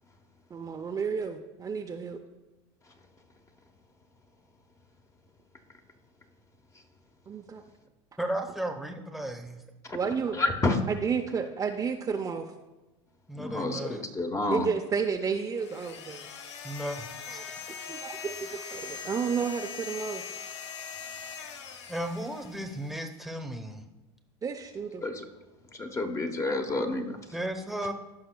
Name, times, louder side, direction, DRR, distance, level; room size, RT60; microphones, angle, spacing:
voice 1, 0.5-2.2 7.3-7.6 9.9-10.4 10.9-12.5 14.5-16.3 17.3-20.3 24.4-25.0, right 6 dB, 25° right, 3 dB, 0.5 m, -32 dB
voice 2, 8.2-9.6 13.3-14.0 16.6-17.4 21.9-23.8 27.3-27.9, right 1 dB, ahead, 4 dB, 1.0 m, -35 dB
voice 3, 10.3-10.8 13.4-14.7 25.0-25.2 25.7-27.2, left 2 dB, 20° left, 5 dB, 1.0 m, -29 dB
sound 1, 15.6-23.0, left 6 dB, 90° left, 0.6 m, -41 dB
15.5 x 5.6 x 2.2 m, 1.1 s
hypercardioid pair, 100°, 14 cm